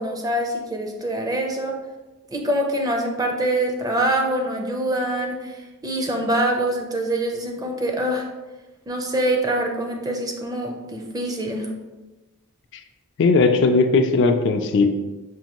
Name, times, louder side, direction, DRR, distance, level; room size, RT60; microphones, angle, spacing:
voice 1, 0.0-1.8 2.3-8.3 8.9-11.7, right 1 dB, 15° right, 2 dB, 0.4 m, -24 dB
voice 2, 13.2-14.9, left 3 dB, 55° left, 6 dB, 0.3 m, -17 dB
5.3 x 2.5 x 2.9 m, 1.2 s
head